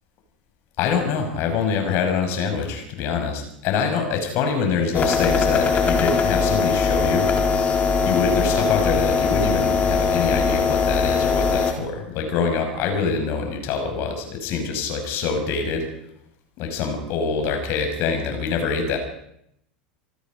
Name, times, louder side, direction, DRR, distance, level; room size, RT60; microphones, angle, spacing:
voice 1, 0.8-7.3 8.0-15.9 16.6-19.0, left 5 dB, 50° left, 5 dB, 6.1 m, -25 dB
sound 1, 4.9-11.7, left 5 dB, 30° left, 4.5 m, -21 dB
27.5 x 18.5 x 5.3 m, 0.75 s
hypercardioid pair, 85°, 5 cm